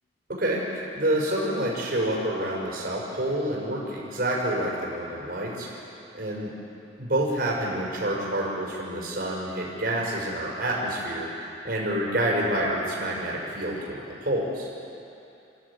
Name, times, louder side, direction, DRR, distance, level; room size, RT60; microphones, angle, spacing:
voice 1, 0.3-5.7 6.1-6.5 7.0-11.3 11.6-14.7, right 1 dB, 55° right, -4 dB, 6.0 m, -28 dB
27.0 x 16.0 x 8.7 m, 2.8 s
head